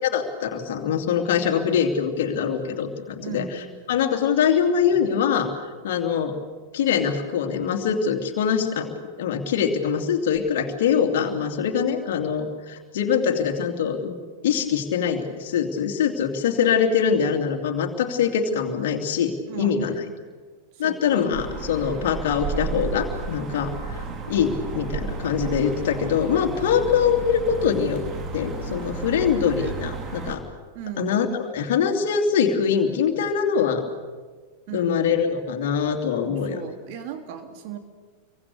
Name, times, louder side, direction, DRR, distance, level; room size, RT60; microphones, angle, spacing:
voice 1, 0.0-3.6 3.9-5.5 5.8-6.3 6.7-14.2 14.4-19.9 20.8-24.0 24.3-28.0 28.3-30.4 31.0-31.3 31.5-33.9 34.7-36.6, left 7 dB, 55° left, 4 dB, 3.0 m, -23 dB
voice 2, 3.2-3.8 19.5-20.0 20.7-21.4 30.7-31.2 34.7-35.1 36.2-37.8, right 7 dB, 45° right, 6 dB, 3.2 m, -37 dB
sound 1, 21.3-30.4, right 4 dB, 30° right, 3.5 m, -32 dB
29.0 x 23.5 x 6.8 m, 1.5 s
figure-of-eight pair, 90°, 0 cm